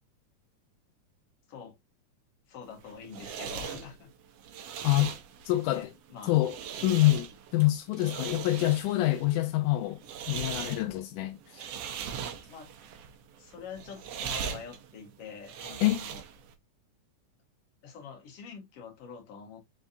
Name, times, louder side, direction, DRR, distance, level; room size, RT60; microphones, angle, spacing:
voice 1, 2.5-4.1 5.7-6.3 12.5-12.7 13.4-16.2 17.8-19.6, left 6 dB, 55° left, 2.3 m, -45 dB
sound 1, 2.7-16.5, right 7 dB, 75° right, 1.5 m, -40 dB
voice 2, 5.5-5.9 6.3-6.6 6.8-10.0 10.3-11.7 15.8-16.1, left 16 dB, 90° left, 2.1 m, -26 dB
5.5 x 3.4 x 2.5 m
omnidirectional pair, 3.6 m